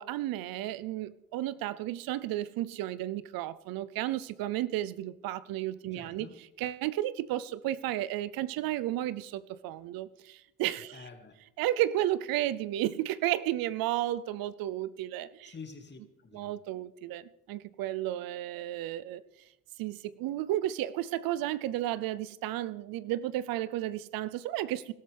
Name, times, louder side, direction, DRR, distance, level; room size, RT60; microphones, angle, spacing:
voice 1, 0.0-6.3 6.6-11.0 11.6-15.5 16.3-19.2 19.8-24.9, right 14 dB, 65° right, 0.7 m, -33 dB
voice 2, 5.9-6.4 10.9-11.4 15.4-16.5, left 4 dB, 30° left, 2.4 m, -48 dB
20.5 x 13.0 x 3.5 m
hypercardioid pair, 65°, 38 cm